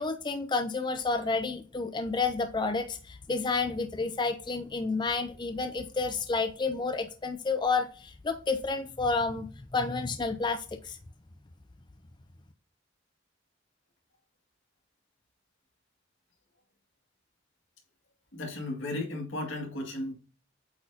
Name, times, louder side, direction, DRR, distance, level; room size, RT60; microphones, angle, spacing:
voice 1, 0.0-11.0, left 4 dB, 25° left, 0.4 m, -30 dB
voice 2, 18.3-20.1, left 2 dB, 85° left, 2.1 m, -35 dB
8.5 x 4.5 x 2.7 m
head